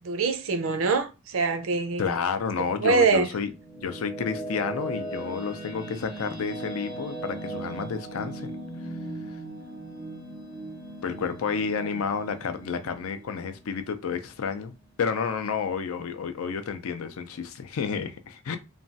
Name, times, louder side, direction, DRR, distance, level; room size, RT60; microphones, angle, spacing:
voice 1, 0.0-2.1 2.8-3.3, right 4 dB, 70° right, 0.5 m, -24 dB
voice 2, 2.0-8.6 9.3-9.4 11.0-18.6, left 6 dB, 80° left, 0.4 m, -30 dB
sound 1, 3.5-14.5, right 2 dB, 20° left, 0.6 m, -38 dB
3.0 x 2.2 x 2.6 m
head